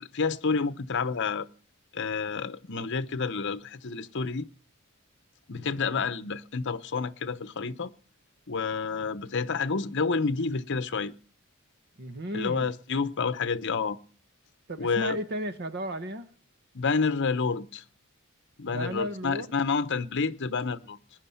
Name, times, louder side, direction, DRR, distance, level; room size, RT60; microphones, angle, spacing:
voice 1, 0.0-1.5 1.9-4.5 5.5-7.9 8.5-11.1 12.3-14.0 14.8-15.2 16.7-17.8 18.6-21.0, left 4 dB, 55° left, 0.9 m, -29 dB
voice 2, 12.0-12.7 14.7-16.3 18.7-19.5, equal, 50° right, 1.2 m, -34 dB
20.5 x 10.5 x 5.7 m
head